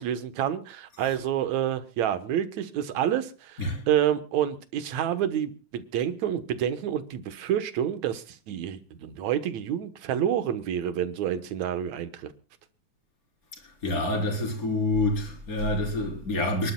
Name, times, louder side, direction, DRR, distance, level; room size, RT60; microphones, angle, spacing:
voice 1, 0.0-12.3, right 10 dB, 65° right, 2.3 m, -28 dB
voice 2, 13.8-16.7, left 2 dB, 25° left, 4.5 m, -27 dB
29.5 x 11.5 x 2.3 m
omnidirectional pair, 3.8 m